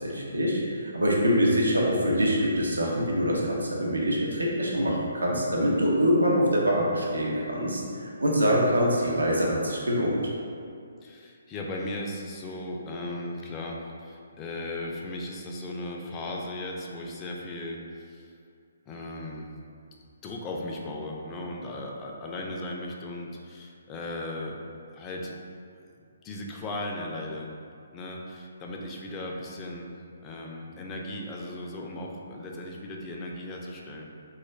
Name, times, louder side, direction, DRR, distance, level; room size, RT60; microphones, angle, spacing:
voice 1, 0.0-10.2, equal, 90° right, -3 dB, 0.6 m, -24 dB
voice 2, 11.0-18.3 18.9-19.5 20.0-24.6 24.9-25.3 26.2-27.5 27.9-29.9 30.2-34.1, left 1 dB, 20° left, -1 dB, 0.3 m, -37 dB
2.3 x 2.2 x 3.1 m, 2.4 s
hypercardioid pair, 145°, 0 cm